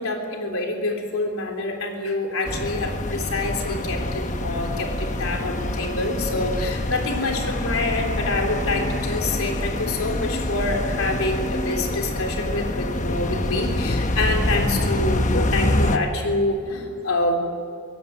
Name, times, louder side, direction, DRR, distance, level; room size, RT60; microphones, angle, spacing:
voice 1, 0.0-17.4, left 2 dB, 75° left, 2 dB, 3.5 m, -26 dB
sound 1, 2.4-16.0, left 1 dB, 35° left, 1.1 m, -26 dB
24.5 x 17.5 x 8.9 m, 2.3 s
head